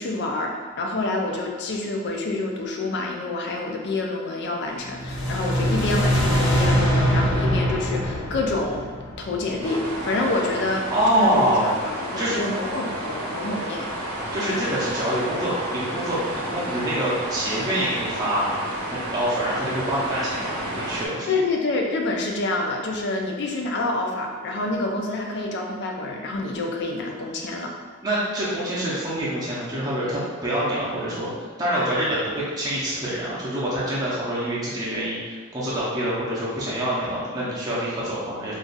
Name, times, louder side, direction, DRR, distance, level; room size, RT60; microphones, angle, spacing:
voice 1, 0.0-8.9 9.2-11.6 11.8-13.9 21.3-27.7, left 2 dB, 50° left, 1 dB, 0.4 m, -27 dB
sound 1, 4.8-10.0, equal, 75° left, 1.2 m, -23 dB
sound 2, 9.6-21.1, right 1 dB, 90° right, 0.7 m, -31 dB
voice 2, 10.9-11.7 12.2-12.4 14.3-16.2 16.5-18.5 18.9-21.3 28.0-31.3 31.6-38.5, equal, 15° right, -8 dB, 0.6 m, -25 dB
2.6 x 2.3 x 3.9 m, 1.5 s
head